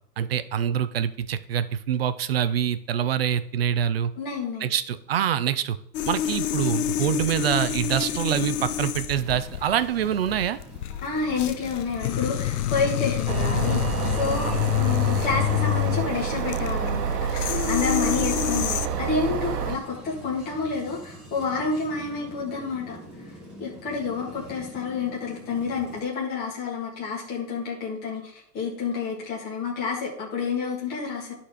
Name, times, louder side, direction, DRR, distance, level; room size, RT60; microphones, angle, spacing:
voice 1, 0.2-4.1 4.6-5.8 6.1-10.6 14.4-14.6, right 9 dB, 40° right, 13 dB, 0.4 m, -25 dB
voice 2, 4.2-4.7 11.0-31.3, left 5 dB, 20° left, -4 dB, 1.7 m, -29 dB
sound 1, 5.9-18.9, left 13 dB, 65° left, 0.6 m, -28 dB
sound 2, 6.4-26.0, equal, ahead, 1.1 m, -45 dB
sound 3, 13.3-19.8, right 7 dB, 70° right, 1.1 m, -28 dB
11.5 x 4.2 x 4.9 m, 0.69 s
supercardioid pair, 160°, 50 cm